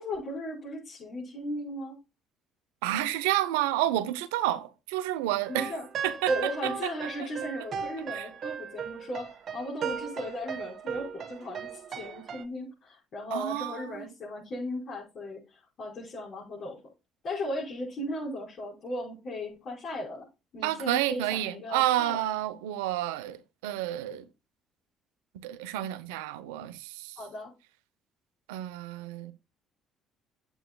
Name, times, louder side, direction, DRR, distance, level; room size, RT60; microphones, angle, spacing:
voice 1, 0.0-2.0 5.5-5.9 6.3-9.3 9.5-16.8 17.2-20.3 20.5-22.2 27.2-27.5, left 1 dB, 55° left, 5.4 m, -36 dB
voice 2, 2.8-5.7 6.0-6.9 8.1-8.3 13.3-14.1 20.6-24.2 25.4-27.2 28.5-29.3, right 14 dB, 85° right, 0.8 m, -30 dB
sound 1, 5.4-12.4, right 7 dB, 55° right, 1.6 m, -37 dB
11.0 x 8.1 x 2.3 m
supercardioid pair, 65°, 0 cm